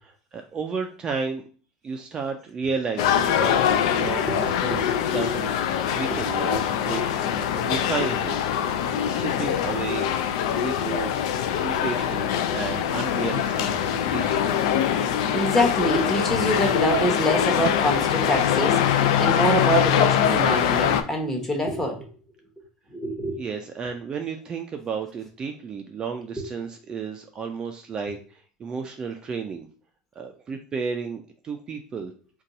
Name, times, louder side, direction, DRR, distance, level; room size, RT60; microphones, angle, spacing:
voice 1, 0.0-1.4 1.8-3.6 3.9-5.5 5.9-8.4 8.9-10.1 10.6-11.2 11.6-14.7 23.4-29.7 30.2-32.1, right 5 dB, 25° right, 5 dB, 0.3 m, -32 dB
sound 1, 3.0-21.0, left 9 dB, 80° left, 0.3 m, -23 dB
voice 2, 4.3-4.8 6.1-6.2 15.3-22.1 22.9-23.4 26.4-26.5, equal, 10° left, 1 dB, 0.9 m, -25 dB
2.6 x 2.3 x 3.9 m, 0.41 s
supercardioid pair, 120°, 3 cm